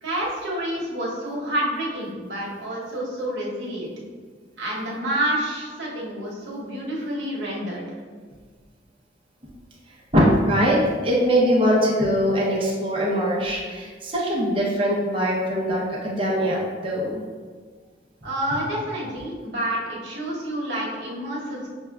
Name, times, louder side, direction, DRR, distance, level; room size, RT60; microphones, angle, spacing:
voice 1, 0.0-3.9 4.6-7.8 18.2-21.7, right 1 dB, 80° right, -4 dB, 1.0 m, -28 dB
voice 2, 10.1-10.8 11.0-17.3, equal, 30° right, -5 dB, 0.7 m, -22 dB
6.1 x 2.2 x 2.3 m, 1.5 s
head